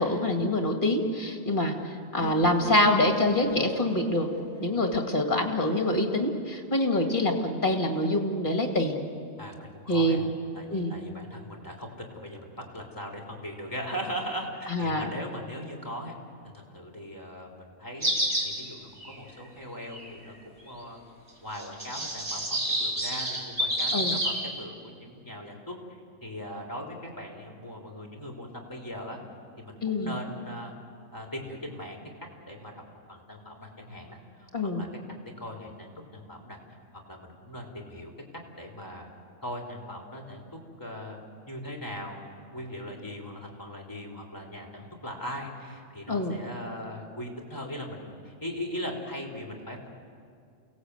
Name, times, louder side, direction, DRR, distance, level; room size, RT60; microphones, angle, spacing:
voice 1, 0.0-4.3 4.6-9.0 9.9-10.2 10.7-10.9 14.7-15.1 23.9-24.2 29.8-30.2 34.5-34.8 46.1-46.4, left 1 dB, 40° left, 3 dB, 2.4 m, -25 dB
sound 1, 2.2-6.2, right 3 dB, 75° right, 3.3 m, -40 dB
voice 2, 9.4-10.2 10.5-16.2 16.5-21.0 21.4-25.8 26.2-29.2 29.6-30.7 31.1-32.0 32.5-32.8 33.1-34.5 34.8-34.9 35.4-36.6 37.1-38.1 38.6-39.1 39.4-40.4 40.8-41.2 41.5-42.2 42.5-49.9, equal, 15° left, 0 dB, 3.5 m, -39 dB
sound 2, 18.0-18.5 19.0-19.1 19.9-20.1 21.5-24.4, right 1 dB, 50° right, 4.2 m, -28 dB
29.0 x 17.5 x 8.2 m, 2.3 s
omnidirectional pair, 1.4 m